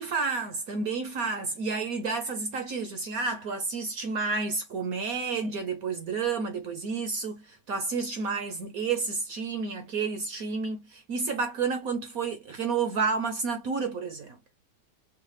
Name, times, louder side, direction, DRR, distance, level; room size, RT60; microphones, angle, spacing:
voice 1, 0.0-14.4, right 4 dB, 60° right, 1.0 m, -30 dB
4.8 x 2.4 x 3.1 m
omnidirectional pair, 2.1 m